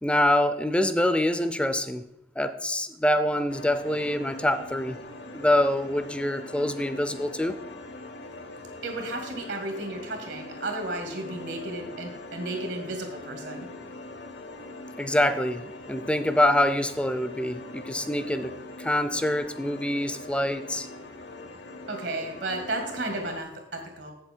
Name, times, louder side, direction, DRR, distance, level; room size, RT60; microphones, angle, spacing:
voice 1, 0.0-2.0 2.4-5.0 5.3-7.5 15.0-18.5 18.8-20.9, left 1 dB, 5° left, 10 dB, 0.4 m, -25 dB
sound 1, 3.5-23.4, left 2 dB, 75° left, 0.8 m, -42 dB
voice 2, 8.8-13.7 21.9-24.1, right 2 dB, 85° right, 4 dB, 2.1 m, -33 dB
7.5 x 7.4 x 4.4 m, 0.83 s
head